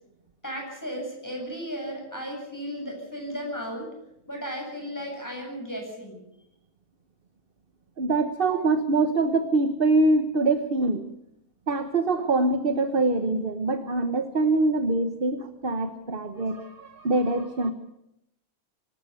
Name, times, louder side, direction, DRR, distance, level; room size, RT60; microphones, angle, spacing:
voice 1, 0.4-3.9 4.3-6.2 8.5-8.6, equal, 10° left, 0 dB, 8.0 m, -35 dB
voice 2, 8.0-11.0 11.7-17.7, right 2 dB, 40° right, 8 dB, 1.3 m, -24 dB
25.5 x 13.0 x 8.4 m, 0.81 s
omnidirectional pair, 1.6 m